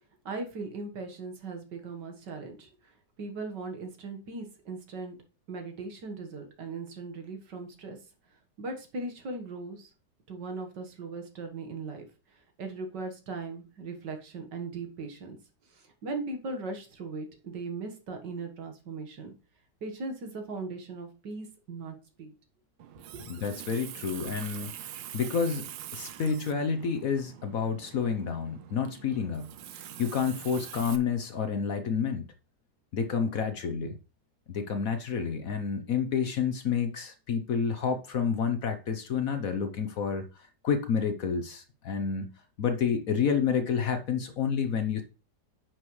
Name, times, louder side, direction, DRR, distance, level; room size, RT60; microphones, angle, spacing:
voice 1, 0.3-2.9 3.2-5.2 5.5-8.0 8.6-9.9 10.3-12.0 12.3-15.4 15.7-19.3 19.8-22.3 23.1-23.3, right 3 dB, 70° right, 2.1 m, -39 dB
Water tap faucet, 22.8-31.0, right 11 dB, 90° right, 1.4 m, -44 dB
voice 2, 23.3-29.5 29.8-32.3 32.9-33.9 34.5-42.3 42.6-45.0, left 6 dB, 60° left, 1.1 m, -29 dB
10.0 x 6.0 x 3.2 m
omnidirectional pair, 2.0 m